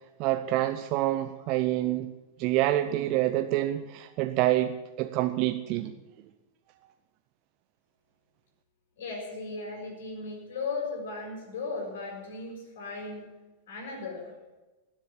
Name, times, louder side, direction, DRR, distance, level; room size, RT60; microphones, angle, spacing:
voice 1, 0.2-2.1 2.4-4.7 5.0-5.9, right 15 dB, 40° right, 8 dB, 0.7 m, -27 dB
voice 2, 9.0-13.2 13.7-14.3, left 3 dB, 55° left, -1 dB, 6.6 m, -36 dB
20.0 x 7.6 x 8.5 m, 1.1 s
figure-of-eight pair, 90°, 0 cm